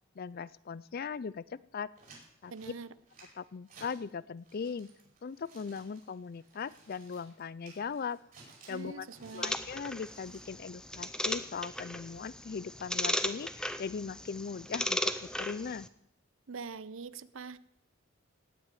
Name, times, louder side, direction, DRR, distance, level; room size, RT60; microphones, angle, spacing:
voice 1, 0.2-1.9 2.4-2.5 3.4-4.9 5.2-8.2 8.7-9.1 9.3-15.9, left 5 dB, 45° left, 20 dB, 0.4 m, -39 dB
sound 1, 1.9-4.1 4.4-10.4, right 3 dB, 40° right, 5.2 m, -57 dB
voice 2, 2.5-2.9 8.7-9.6 16.5-17.6, right 4 dB, 70° right, 17 dB, 0.7 m, -43 dB
sound 2, 9.4-15.9, left 1 dB, 5° left, 0.6 m, -36 dB
17.5 x 6.0 x 9.2 m, 0.79 s
head